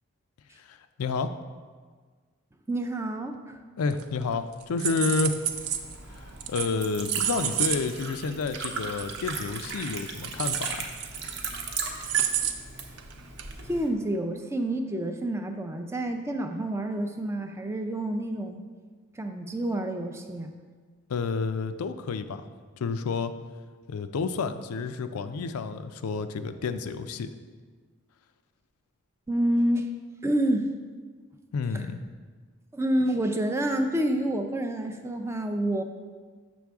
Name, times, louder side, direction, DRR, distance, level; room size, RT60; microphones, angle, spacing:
voice 1, 0.6-1.3 3.8-5.4 6.1-10.9 21.1-22.4 22.8-23.3 23.9-27.3 31.5-32.0, left 4 dB, 90° left, 10 dB, 0.4 m, -30 dB
voice 2, 2.7-3.6 13.6-18.6 19.1-20.5 29.3-29.9 30.2-30.7 31.7-31.9 32.7-35.8, right 1 dB, 10° right, 5 dB, 0.4 m, -28 dB
sound 1, 3.9-4.3 4.6-5.9 6.4-6.8 7.1-7.8 8.0-8.1 8.6-8.7 9.0-9.2 9.6-11.6 12.0-12.5 13.0-13.1 13.4-13.5, right 9 dB, 90° right, 0.5 m, -29 dB
Liquid, 5.3-13.9, right 4 dB, 55° right, 0.8 m, -37 dB
7.4 x 6.1 x 3.5 m, 1.5 s
head